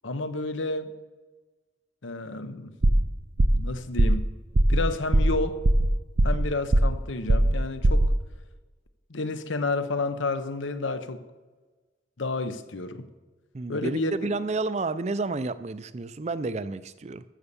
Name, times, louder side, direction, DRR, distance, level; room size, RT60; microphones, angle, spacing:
voice 1, 0.0-0.9 2.0-2.7 3.5-4.3 4.7-5.6 6.2-8.1 9.1-11.2 12.2-13.1 13.7-14.3, left 3 dB, 85° left, 11 dB, 0.9 m, -30 dB
sound 1, 2.8-3.1 3.4-3.7 4.0-4.3 4.5-4.8 5.1-5.4 5.6-6.5 6.7-7.0 7.3-7.6 7.8-8.1, right 1 dB, 65° right, 0.7 m, -20 dB
voice 2, 13.5-17.2, right 3 dB, 35° right, 14 dB, 0.4 m, -30 dB
14.0 x 6.7 x 7.0 m, 1.3 s
head